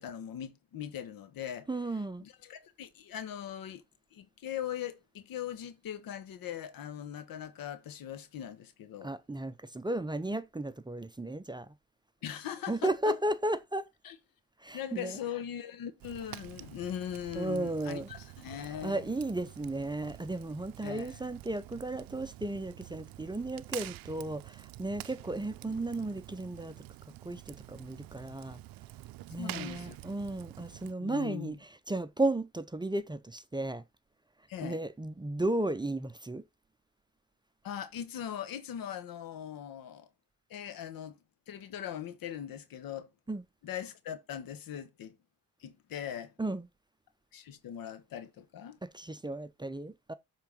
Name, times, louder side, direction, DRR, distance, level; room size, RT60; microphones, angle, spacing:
voice 1, 0.0-1.7 2.2-3.8 4.1-9.1 12.2-13.2 14.0-14.2 14.7-19.0 20.8-21.2 29.4-30.0 31.0-31.6 34.5-34.8 37.6-40.1 40.5-41.2 41.5-43.1 43.6-45.2 45.6-46.3 47.3-48.8, left 10 dB, 75° left, 1.3 m, -40 dB
voice 2, 1.7-2.2 9.0-11.7 12.7-13.9 14.6-15.2 17.3-18.1 18.8-26.8 27.2-28.6 29.3-33.8 34.6-36.4 43.3-43.4 46.4-46.7 48.8-50.1, right 2 dB, 10° right, 0.7 m, -34 dB
Fire, 16.0-30.9, right 17 dB, 75° right, 0.5 m, -48 dB
7.2 x 3.9 x 5.2 m
cardioid pair, 75°, 35 cm